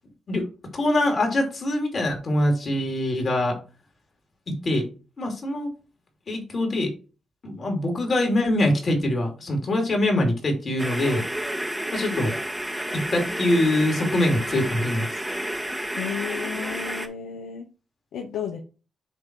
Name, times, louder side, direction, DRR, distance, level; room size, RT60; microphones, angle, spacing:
voice 1, 0.7-3.6 4.5-4.9 5.2-5.7 6.3-6.9 7.4-11.2 11.9-12.3 12.9-15.1, left 1 dB, 50° left, 3 dB, 2.9 m, -23 dB
sound 1, 10.8-17.1, right 1 dB, 5° right, 1.4 m, -30 dB
voice 2, 15.9-17.7 18.1-18.6, left 8 dB, 80° left, 4 dB, 0.8 m, -32 dB
7.8 x 3.3 x 4.6 m, 0.34 s
supercardioid pair, 60°, 0 cm